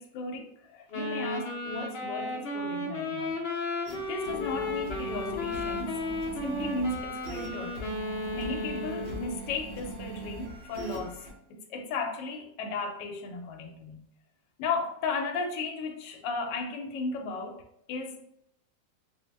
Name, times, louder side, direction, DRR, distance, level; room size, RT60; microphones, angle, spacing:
voice 1, 0.0-3.4 4.1-6.0 6.3-7.8 8.3-14.1 14.6-17.6 17.9-18.3, left 3 dB, 80° left, 3 dB, 1.2 m, -35 dB
Wind instrument woodwind instrument, 0.9-9.4, left 2 dB, 55° left, 0.6 m, -34 dB
sound 1, 3.8-11.3, right 1 dB, 70° right, 0.6 m, -41 dB
3.9 x 2.0 x 3.2 m, 0.77 s
omnidirectional pair, 1.9 m